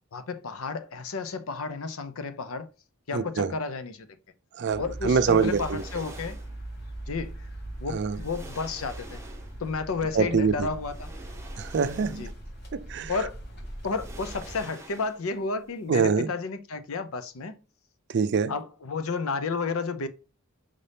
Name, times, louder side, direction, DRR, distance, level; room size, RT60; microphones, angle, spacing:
voice 1, 0.1-2.7 3.1-4.1 4.8-6.4 7.1-7.4 7.8-9.2 9.6-11.1 12.1-12.3 13.1-13.4 13.8-17.6 18.5-20.1, left 4 dB, 75° left, 0.6 m, -32 dB
voice 2, 3.1-3.5 4.6-5.8 7.9-8.2 10.2-10.7 11.6-12.3 12.7-13.1 15.9-16.3 18.1-18.5, right 5 dB, 55° right, 0.4 m, -24 dB
sound 1, 4.7-14.6, right 1 dB, 50° left, 1.2 m, -40 dB
sound 2, 5.1-6.6 7.6-7.7 8.1-9.7 10.8-12.5 12.9-13.0 13.8-15.4 15.7-15.8, right 2 dB, 10° right, 0.8 m, -47 dB
5.1 x 2.7 x 3.3 m
head